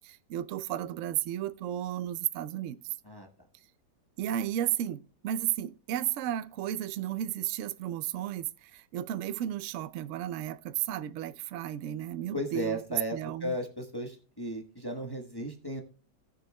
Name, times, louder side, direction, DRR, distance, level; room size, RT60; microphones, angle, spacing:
voice 1, 0.0-2.8 4.2-13.6, right 12 dB, 75° right, 0.7 m, -33 dB
voice 2, 12.3-15.8, equal, 20° left, 0.8 m, -35 dB
18.0 x 6.5 x 2.2 m
omnidirectional pair, 1.8 m